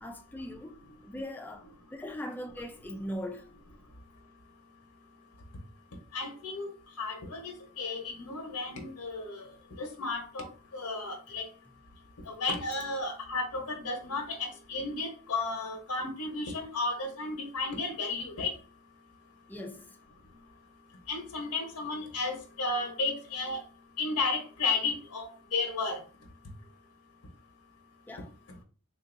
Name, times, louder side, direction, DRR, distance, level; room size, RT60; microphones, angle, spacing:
voice 1, 0.0-3.5 19.5-20.0 28.1-28.4, left 1 dB, 10° left, 0.4 m, -40 dB
voice 2, 6.1-6.7 7.0-9.4 9.8-10.5 10.7-11.5 12.3-18.5 21.1-23.6 24.0-26.0, left 3 dB, 85° left, 1.0 m, -33 dB
3.7 x 2.6 x 2.5 m
head